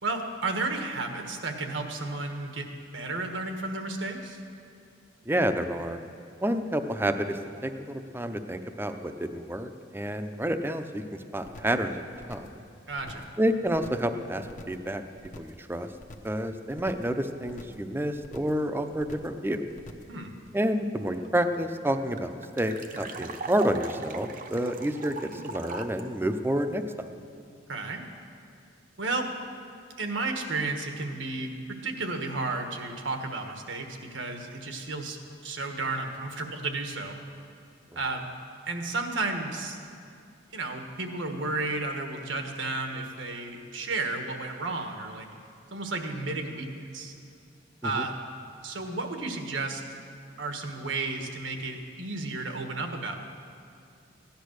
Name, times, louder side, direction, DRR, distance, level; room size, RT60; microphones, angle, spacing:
voice 1, 0.0-2.7 2.9-4.4 10.0-10.2 12.9-13.3 20.1-20.3 27.7-28.0 29.0-29.3 30.0-31.5 31.8-35.2 35.4-37.2 37.9-38.3 38.7-39.8 40.5-45.3 45.7-47.1 47.8-48.1 48.6-49.8 50.4-53.1, right 3 dB, 85° right, 4 dB, 1.5 m, -32 dB
voice 2, 5.3-6.0 6.4-11.0 11.3-12.0 12.3-12.5 13.4-15.0 15.4-15.9 16.2-19.6 20.5-26.8 47.8-48.1, right 1 dB, 10° right, 8 dB, 0.6 m, -29 dB
sound 1, 11.4-11.8 12.1-12.6 12.9-13.4 13.7-14.1 14.4-14.9 15.2-15.6 15.9-16.4 16.7-17.2 17.5-17.9 18.2-18.6 18.9-19.4 19.7-20.2 20.5-20.6, left 1 dB, 45° left, 1.0 m, -46 dB
sound 2, 21.2-21.3 21.5-21.6 21.9-26.0, right 3 dB, 45° right, 0.8 m, -39 dB
15.5 x 10.5 x 6.5 m, 2.5 s
head